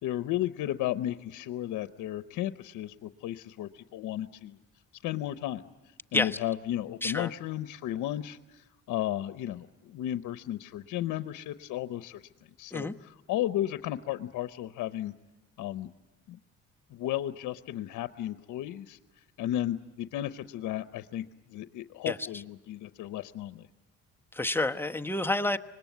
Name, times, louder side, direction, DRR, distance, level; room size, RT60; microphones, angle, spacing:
voice 1, 0.0-4.6 5.0-5.6 6.1-12.2 12.6-15.1 15.6-15.9 16.3-16.4 16.9-19.0 19.4-23.7, left 13 dB, 85° left, 12 dB, 0.8 m, -34 dB
voice 2, 24.3-25.6, left 2 dB, 5° left, 5 dB, 1.0 m, -29 dB
25.5 x 20.5 x 9.3 m, 1.0 s
cardioid pair, 90°, 30 cm